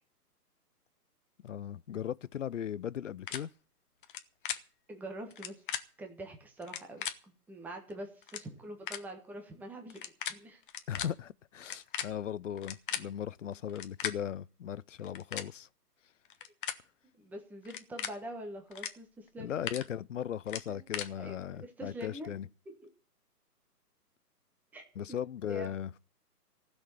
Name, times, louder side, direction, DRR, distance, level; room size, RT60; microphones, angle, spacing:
voice 1, 1.4-3.5 10.9-15.7 19.4-22.5 25.0-25.9, left 9 dB, 50° left, 0.6 m, -38 dB
sound 1, 3.3-3.4 4.0-4.2 4.4-4.6 5.3-5.8 6.6-7.1 7.9-8.0 8.2-8.4 8.9-9.0 9.9-10.3 10.6-11.1 11.6-13.0 13.7-14.1 15.0-15.5 16.3-16.8 17.6-18.1 18.7-18.9 19.3-19.8 20.5-21.1, left 9 dB, 35° left, 1.1 m, -37 dB
voice 2, 4.9-5.6 6.0-10.6 17.2-19.6 20.7-20.8 21.2-22.3 22.6-22.7 24.7-25.2 25.5-25.8, right 1 dB, 5° right, 1.3 m, -45 dB
16.0 x 6.5 x 9.2 m
hypercardioid pair, 145°, 48 cm